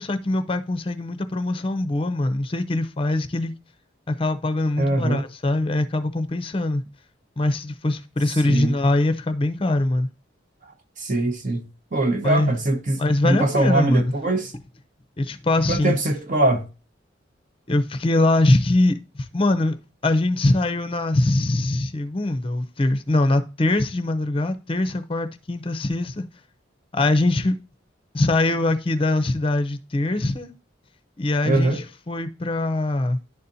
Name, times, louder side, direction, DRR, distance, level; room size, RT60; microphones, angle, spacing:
voice 1, 0.0-3.5 4.1-6.8 7.4-10.1 12.2-12.5 13.0-14.1 15.2-15.9 17.7-19.7 20.0-26.2 26.9-27.5 28.1-30.5 31.2-33.2, left 2 dB, 30° left, 0.6 m, -22 dB
voice 2, 4.8-5.3 8.5-8.7 11.0-11.6 11.9-14.5 15.7-16.6 31.4-31.8, right 2 dB, 40° right, 1.0 m, -22 dB
11.0 x 4.2 x 2.6 m
head